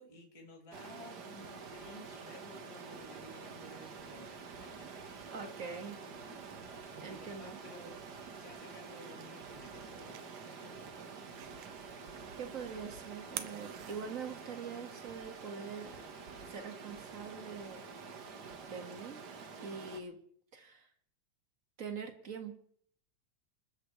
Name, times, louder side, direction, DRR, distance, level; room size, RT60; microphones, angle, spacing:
voice 1, 0.0-5.0 6.9-8.0 8.3-11.0, left 1 dB, 10° left, -2 dB, 2.8 m, -55 dB
Stream, 0.7-20.0, right 5 dB, 50° right, 1.3 m, -48 dB
voice 2, 5.3-6.0 7.0-7.6 12.4-16.0 16.5-17.8 18.7-19.2 19.6-20.2 20.5-20.9 21.8-22.5, right 5 dB, 35° right, 5 dB, 1.6 m, -44 dB
sound 1, 8.0-14.6, right 11 dB, 85° right, 2.4 m, -51 dB
28.5 x 13.0 x 3.2 m, 0.63 s
omnidirectional pair, 3.4 m